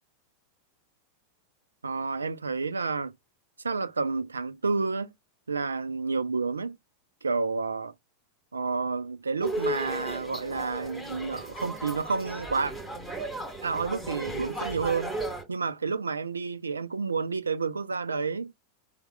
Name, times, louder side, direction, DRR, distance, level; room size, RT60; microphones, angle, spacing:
voice 1, 1.8-3.1 3.6-5.1 5.5-6.8 7.2-7.9 8.5-12.7 13.6-15.1 15.5-18.5, right 4 dB, 75° right, 0.3 m, -30 dB
sound 1, 9.4-15.4, right 2 dB, 5° left, 2.8 m, -35 dB
4.1 x 2.0 x 3.7 m
figure-of-eight pair, 90°, 0 cm